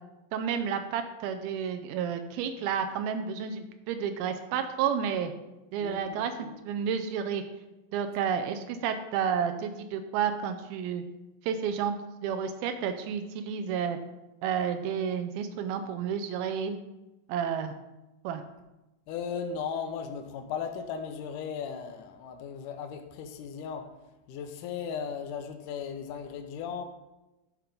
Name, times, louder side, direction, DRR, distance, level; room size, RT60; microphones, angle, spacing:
voice 1, 0.3-5.3 5.7-6.3 6.6-7.4 7.9-11.0 11.4-12.0 12.2-14.0 14.4-16.8 17.3-17.7 18.2-18.4, right 7 dB, 85° right, 7 dB, 2.5 m, -31 dB
voice 2, 5.8-6.5 19.1-23.9 24.3-26.8, left 6 dB, 75° left, 5 dB, 2.0 m, -36 dB
11.0 x 4.5 x 5.1 m, 1.0 s
omnidirectional pair, 4.3 m